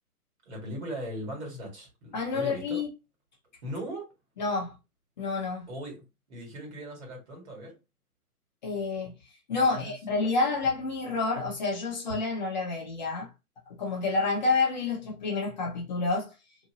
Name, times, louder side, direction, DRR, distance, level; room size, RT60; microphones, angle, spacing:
voice 1, 0.5-2.8 3.6-4.1 5.7-7.8 9.6-9.9, equal, 45° right, 1.7 m, -39 dB
voice 2, 2.1-2.9 4.4-4.8 5.2-5.7 8.6-13.3 13.8-16.3, left 3 dB, 30° left, 0.7 m, -29 dB
2.8 x 2.6 x 2.8 m
hypercardioid pair, 150°, 45 cm